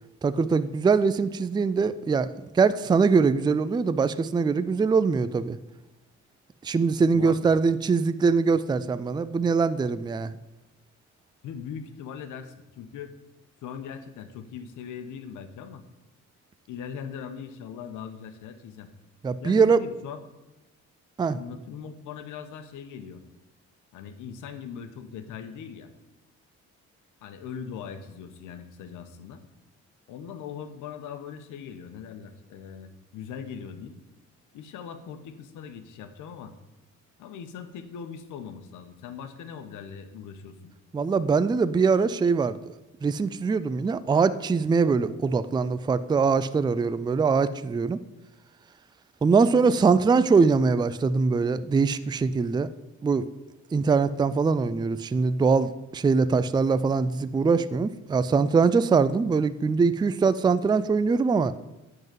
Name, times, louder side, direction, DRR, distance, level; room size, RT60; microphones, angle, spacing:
voice 1, 0.2-2.3 2.5-5.6 6.6-10.4 19.2-19.8 21.2-21.4 40.9-42.6 43.0-48.0 49.2-52.7 53.0-53.2 53.7-61.5, right 5 dB, 15° right, 14 dB, 0.4 m, -22 dB
voice 2, 7.1-7.5 11.4-13.1 13.6-15.8 16.7-18.9 19.4-20.2 21.3-23.2 23.9-25.9 27.2-29.4 30.1-34.0 34.5-36.5 37.2-40.7, left 7 dB, 90° left, 9 dB, 1.0 m, -40 dB
10.5 x 4.0 x 7.5 m, 1.0 s
cardioid pair, 90°, 30 cm